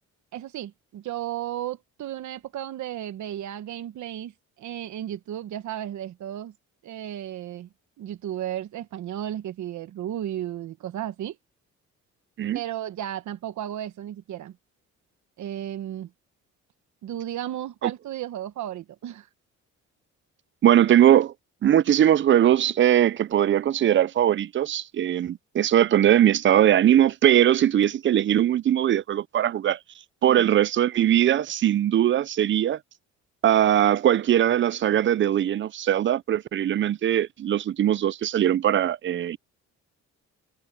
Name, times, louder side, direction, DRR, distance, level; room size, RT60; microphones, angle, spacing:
voice 1, 0.3-4.3 4.6-6.5 6.8-7.7 8.0-11.4 12.5-14.5 15.4-16.1 17.0-19.3 30.2-30.5, right 11 dB, 70° right, 1.2 m, -34 dB
voice 2, 20.6-21.3 21.6-29.8 30.2-32.8 33.4-39.4, right 11 dB, 40° right, 0.5 m, -20 dB
cardioid pair, 90°, 30 cm